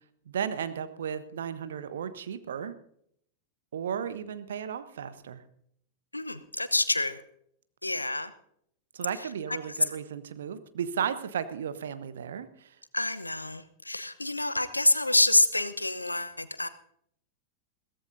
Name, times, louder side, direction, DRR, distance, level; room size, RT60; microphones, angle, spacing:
voice 1, 0.3-2.7 3.7-5.4 8.9-12.7, right 8 dB, 65° right, 12 dB, 1.1 m, -34 dB
voice 2, 6.1-7.2 7.8-8.3 9.1-10.0 12.9-16.7, left 2 dB, 85° left, 13 dB, 0.8 m, -27 dB
22.0 x 16.5 x 2.7 m, 0.70 s
figure-of-eight pair, 90°, 0 cm